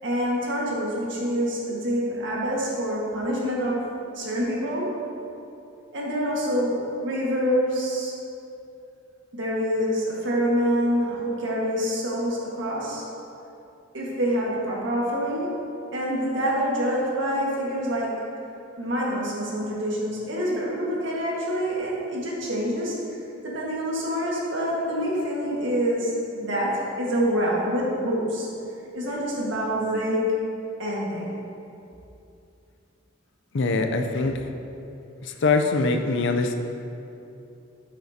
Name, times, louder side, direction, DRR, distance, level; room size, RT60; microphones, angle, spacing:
voice 1, 0.0-3.8 4.1-5.0 5.9-8.1 9.3-13.0 13.9-15.6 15.9-18.2 18.8-23.0 23.4-28.5 28.9-30.3 30.8-31.4, equal, 65° right, -4 dB, 1.7 m, -26 dB
voice 2, 33.5-34.4 35.2-36.6, left 3 dB, 65° left, 6 dB, 0.5 m, -23 dB
8.6 x 7.6 x 2.8 m, 2.8 s
head